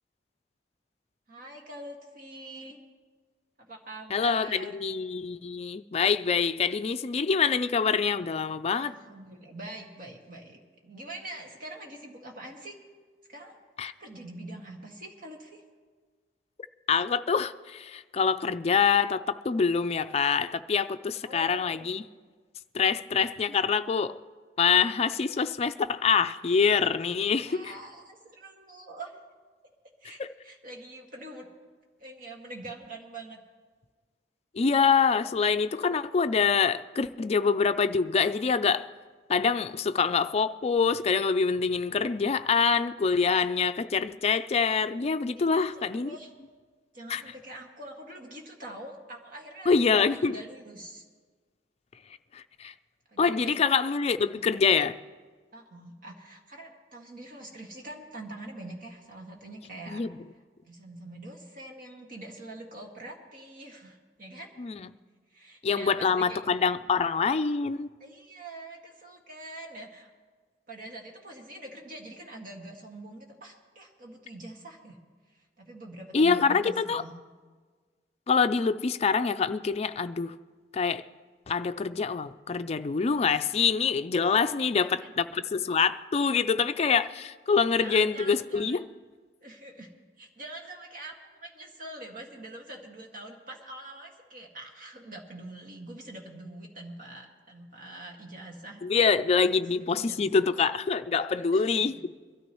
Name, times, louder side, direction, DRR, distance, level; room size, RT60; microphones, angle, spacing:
voice 1, 1.3-2.8 3.6-4.8 8.7-12.8 13.3-13.6 14.0-15.6 21.2-21.9 27.4-29.2 30.0-31.5 32.0-33.4 39.6-39.9 45.4-45.5 45.7-46.3 46.9-51.0 53.1-53.5 54.3-54.5 55.5-60.0 60.7-64.5 65.3-66.4 68.0-70.1 70.7-75.0 75.3-77.1 84.6-84.7 85.0-85.2 87.5-88.8 89.4-89.9 90.2-98.9 99.4-100.2 101.4-101.9, right 1 dB, 50° right, 2.0 m, -44 dB
voice 2, 4.1-8.9 13.8-13.9 16.9-22.0 22.7-24.2 24.6-27.7 30.2-30.3 34.5-38.9 39.3-46.1 47.1-47.2 49.7-50.4 52.3-52.7 53.2-55.0 59.9-60.1 64.6-64.9 65.6-67.9 76.1-77.0 78.3-80.4 80.7-81.0 81.5-88.9 98.8-102.0, left 5 dB, 35° left, 0.4 m, -25 dB
23.0 x 13.5 x 3.1 m
head